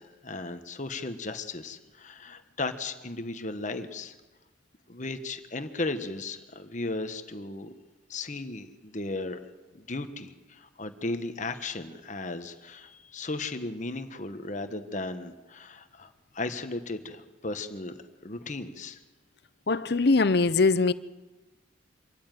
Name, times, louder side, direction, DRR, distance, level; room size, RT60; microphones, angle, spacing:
voice 1, 0.0-4.1 4.9-7.7 8.1-9.4 9.7-17.9 18.2-19.0, left 2 dB, 40° left, 1.3 m, -36 dB
voice 2, 19.7-20.9, left 3 dB, 55° left, 0.7 m, -22 dB
25.5 x 14.0 x 9.3 m
head